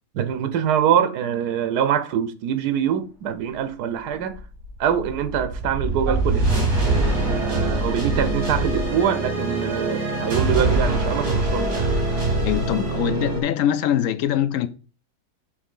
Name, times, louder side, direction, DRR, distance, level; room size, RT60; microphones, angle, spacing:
voice 1, 0.1-4.4 4.8-6.5 7.3-11.9, right 9 dB, 85° right, 1.3 m, -24 dB
sound 1, 4.3-13.4, right 2 dB, 65° right, 3.0 m, -23 dB
voice 2, 12.4-14.7, left 10 dB, 65° left, 0.8 m, -23 dB
6.3 x 3.3 x 5.5 m
omnidirectional pair, 1.7 m